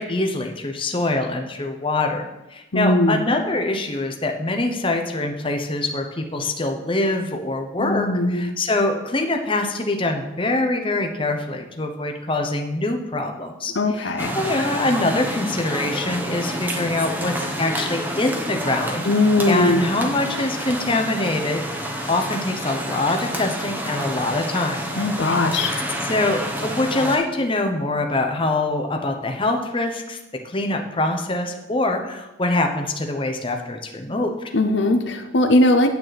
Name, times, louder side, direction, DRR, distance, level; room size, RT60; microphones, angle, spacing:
voice 1, 0.0-2.2 2.5-19.1 19.5-24.8 25.2-25.4 26.0-30.2 30.4-34.5, left 2 dB, 25° left, 4 dB, 0.8 m, -24 dB
voice 2, 2.7-3.2 7.8-8.5 13.7-14.3 19.0-19.8 25.0-25.8 34.5-35.9, left 2 dB, 60° left, 6 dB, 0.7 m, -19 dB
sound 1, 14.2-27.2, equal, 10° right, 1.0 m, -29 dB
9.2 x 8.4 x 4.1 m, 0.97 s
head